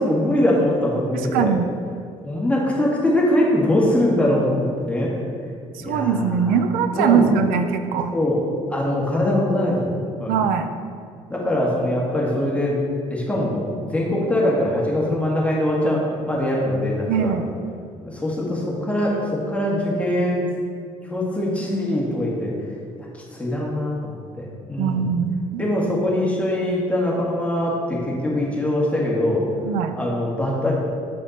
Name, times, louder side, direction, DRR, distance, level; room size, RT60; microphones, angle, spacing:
voice 1, 0.0-1.5 2.2-5.1 5.8-6.6 6.9-7.3 8.1-8.4 8.7-10.4 11.3-12.8 13.1-17.4 18.0-20.5 21.0-22.5 23.0-25.1 25.6-29.4 29.9-30.7, left 1 dB, 10° left, -4 dB, 1.6 m, -22 dB
voice 2, 1.3-1.7 5.7-8.1 10.3-10.7 17.1-17.5 24.8-25.7 29.6-30.0, right 7 dB, 85° right, 8 dB, 0.5 m, -21 dB
7.7 x 4.2 x 4.0 m, 2.2 s
supercardioid pair, 80°, 15 cm